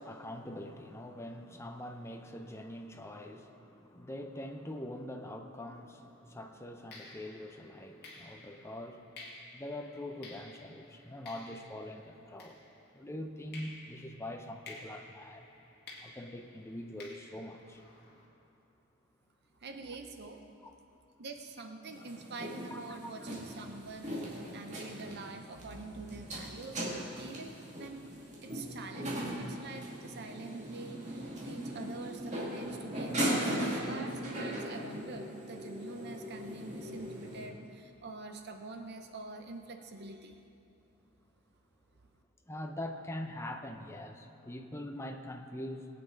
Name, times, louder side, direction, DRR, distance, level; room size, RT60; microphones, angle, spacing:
voice 1, 0.0-9.1 9.5-12.6 12.9-15.5 16.0-17.8 20.6-20.7 22.7-23.1 42.5-46.0, left 1 dB, 15° left, 4 dB, 0.6 m, -43 dB
sound 1, 5.8-6.0 6.9-13.1 13.5-18.3, left 2 dB, 50° left, 2.2 m, -53 dB
voice 2, 19.6-20.4 21.2-28.1 28.4-40.4, right 3 dB, 50° right, 5 dB, 0.7 m, -45 dB
sound 2, 21.9-37.4, equal, 35° right, 2.2 m, -39 dB
20.0 x 8.7 x 3.8 m, 2.9 s
head